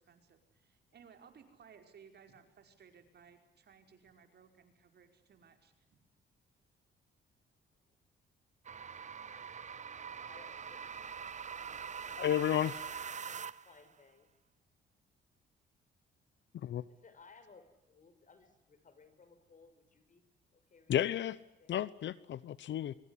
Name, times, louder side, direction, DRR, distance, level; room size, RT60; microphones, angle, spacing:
voice 1, 0.0-5.7, right 7 dB, 55° right, 6 dB, 5.3 m, -60 dB
sound 1, 8.6-13.8, right 7 dB, 35° right, 1.0 m, -43 dB
voice 2, 10.2-10.8 11.9-12.2 13.6-14.3 16.9-20.3 20.5-21.0 21.6-21.7, left 4 dB, 40° left, 10 dB, 6.2 m, -61 dB
voice 3, 12.2-12.9 16.5-16.8 20.9-21.4 21.7-22.9, left 11 dB, 65° left, 18 dB, 1.0 m, -32 dB
25.0 x 24.0 x 10.0 m, 0.88 s
cardioid pair, 90°, 20 cm